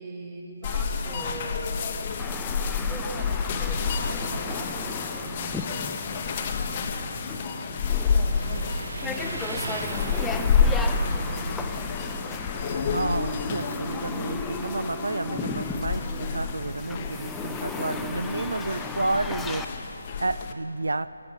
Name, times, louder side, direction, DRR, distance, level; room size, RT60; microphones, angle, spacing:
voice 1, 0.0-1.8 2.4-7.1 8.0-11.5 11.8-13.1, right 2 dB, 15° right, 1.5 m, -42 dB
sound 1, 0.6-20.5, left 5 dB, 25° left, 0.7 m, -29 dB
sound 2, 2.2-19.7, left 3 dB, 5° left, 0.3 m, -37 dB
Motorcycle, 6.9-19.5, right 3 dB, 65° right, 0.7 m, -42 dB
voice 2, 12.8-21.1, right 2 dB, 90° right, 0.4 m, -31 dB
17.5 x 14.5 x 5.3 m
figure-of-eight pair, 165°, 0 cm